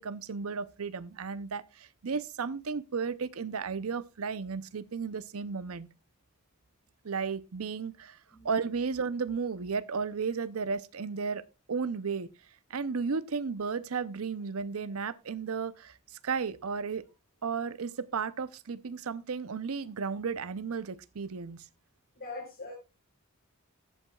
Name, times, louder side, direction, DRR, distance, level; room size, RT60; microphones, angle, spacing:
voice 1, 0.0-5.9 7.0-8.2 8.4-12.3 12.7-17.0 17.4-21.7, right 5 dB, 75° right, 0.6 m, -34 dB
voice 2, 22.1-22.7, left 3 dB, 50° left, 4.1 m, -42 dB
14.5 x 8.3 x 2.3 m
head